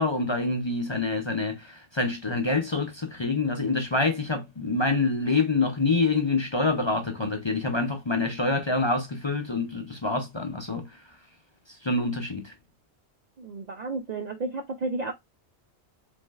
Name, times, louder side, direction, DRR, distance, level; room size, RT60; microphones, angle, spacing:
voice 1, 0.0-10.9 11.7-12.5, left 3 dB, 30° left, 0.5 m, -26 dB
voice 2, 13.4-15.1, right 3 dB, 55° right, 0.5 m, -32 dB
5.1 x 3.4 x 2.3 m
omnidirectional pair, 1.2 m